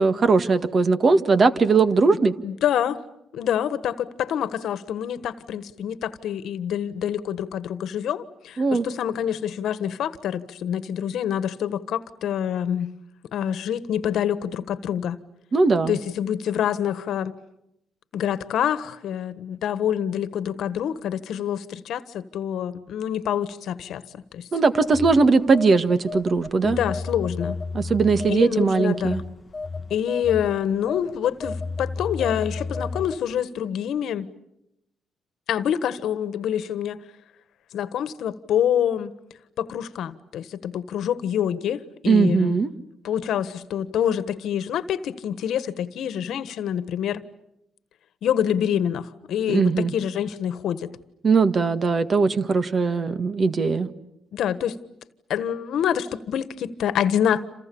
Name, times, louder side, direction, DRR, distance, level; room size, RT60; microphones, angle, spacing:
voice 1, 0.0-2.3 8.6-8.8 15.5-16.0 24.5-26.8 27.7-29.2 42.1-42.7 49.5-49.9 51.2-53.9, right 4 dB, 40° right, 11 dB, 1.7 m, -19 dB
voice 2, 2.4-3.0 3.3-12.9 13.3-15.2 15.9-17.3 18.1-24.5 26.6-27.6 28.3-29.2 29.9-34.3 35.5-37.0 37.7-39.1 39.6-42.6 43.0-47.2 48.2-50.9 54.3-54.8 55.3-57.4, left 9 dB, 75° left, 14 dB, 1.4 m, -26 dB
Telephone, 24.7-33.4, left 3 dB, 30° left, 0.9 m, -33 dB
28.0 x 28.0 x 7.1 m, 0.84 s
cardioid pair, 90°, 0 cm